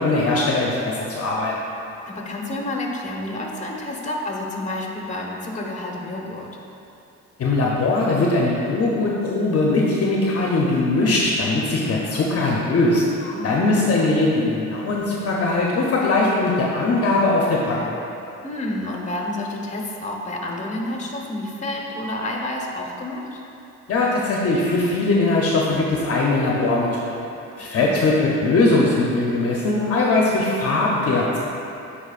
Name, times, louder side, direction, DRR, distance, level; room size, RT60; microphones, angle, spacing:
voice 1, 0.0-1.5 7.4-13.0 13.4-17.9 23.9-27.2 27.6-31.4, left 2 dB, 50° left, -3 dB, 0.8 m, -20 dB
voice 2, 2.1-6.5 13.2-13.7 18.4-23.4 27.6-28.2, left 1 dB, 25° left, -1 dB, 1.1 m, -30 dB
9.9 x 4.4 x 2.5 m, 2.8 s
cardioid pair, 90°, 30 cm